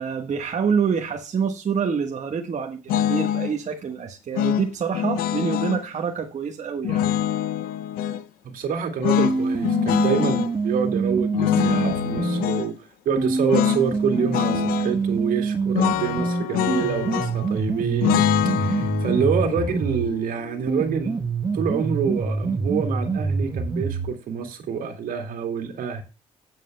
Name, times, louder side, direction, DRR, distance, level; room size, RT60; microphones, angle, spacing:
voice 1, 0.0-7.1, right 6 dB, 55° right, 1.3 m, -26 dB
sound 1, 2.9-3.5 4.3-5.8 6.8-8.2 9.0-10.5 11.3-12.7 13.5-13.8 14.1-14.9 15.7-17.5 18.0-21.1, left 11 dB, 90° left, 0.6 m, -25 dB
voice 2, 8.4-12.7 13.1-18.2 18.6-21.2 21.5-26.0, right 6 dB, 75° right, 2.2 m, -27 dB
sound 2, 9.2-12.5 13.2-20.1 20.7-24.1, right 4 dB, 30° right, 1.4 m, -26 dB
18.0 x 7.7 x 2.2 m
supercardioid pair, 60°, 15 cm